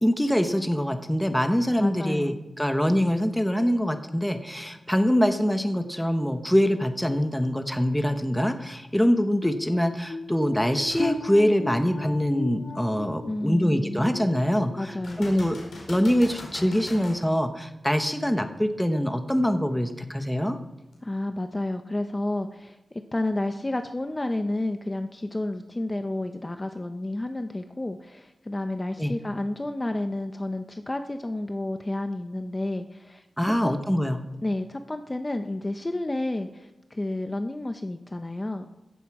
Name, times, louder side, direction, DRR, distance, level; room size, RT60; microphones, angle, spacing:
voice 1, 0.0-14.9 15.2-15.6 15.9-20.6 29.0-29.1 33.4-34.2, equal, 5° left, 7 dB, 1.1 m, -24 dB
voice 2, 1.8-2.4 13.3-14.2 14.8-15.4 21.0-22.8 23.1-33.8 34.4-38.8, left 1 dB, 20° left, 7 dB, 0.8 m, -31 dB
sound 1, 9.4-15.1 15.5-15.8 16.3-16.5, left 2 dB, 40° left, 1.0 m, -38 dB
sound 2, 10.9-11.2 11.7-11.8 15.0-17.2 20.9-21.0, left 2 dB, 85° left, 4.7 m, -41 dB
16.5 x 14.5 x 4.9 m, 0.98 s
wide cardioid pair, 125°, 0 cm